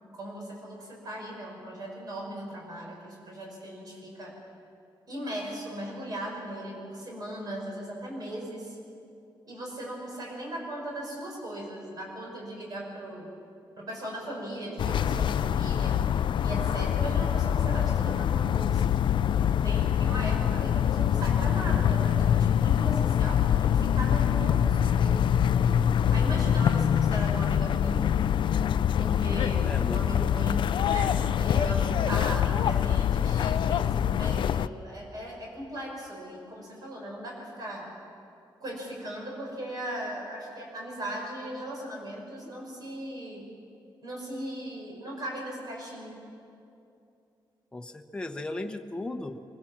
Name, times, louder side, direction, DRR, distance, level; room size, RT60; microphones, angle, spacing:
voice 1, 0.1-4.4 5.1-8.8 9.5-13.3 13.8-19.1 19.6-25.7 26.1-28.0 29.0-37.9 38.6-43.5 44.0-46.1, right 1 dB, 50° right, -1 dB, 5.9 m, -38 dB
sound 1, 14.8-34.7, left 9 dB, 75° left, 0.4 m, -25 dB
voice 2, 29.7-30.3 47.7-49.4, left 2 dB, 10° left, 3 dB, 1.0 m, -36 dB
24.5 x 16.0 x 7.4 m, 2.6 s
wide cardioid pair, 145°, 8 cm